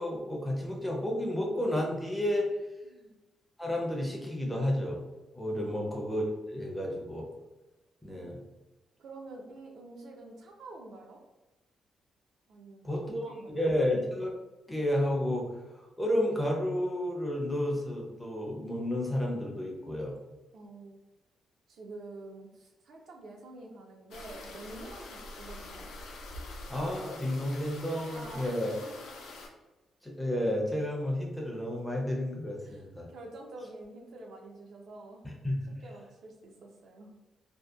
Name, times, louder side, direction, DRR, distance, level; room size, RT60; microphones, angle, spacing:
voice 1, 0.0-2.5 3.6-5.0 5.3-6.2 6.5-7.3 8.0-8.4 12.8-14.3 14.7-15.5 15.8-20.1 26.7-28.7 30.0-33.1 35.2-35.7, left 1 dB, 5° left, -1 dB, 0.5 m, -31 dB
voice 2, 2.8-3.1 5.6-5.9 8.1-8.3 9.0-11.2 12.5-13.0 13.2-13.6 20.5-21.0 21.7-25.9 28.1-29.1 32.6-35.2 35.8-37.1, right 2 dB, 60° right, 1 dB, 0.4 m, -48 dB
sound 1, 24.1-29.5, left 2 dB, 80° left, 0.4 m, -45 dB
2.7 x 2.1 x 2.2 m, 1.1 s
cardioid pair, 145°, 0 cm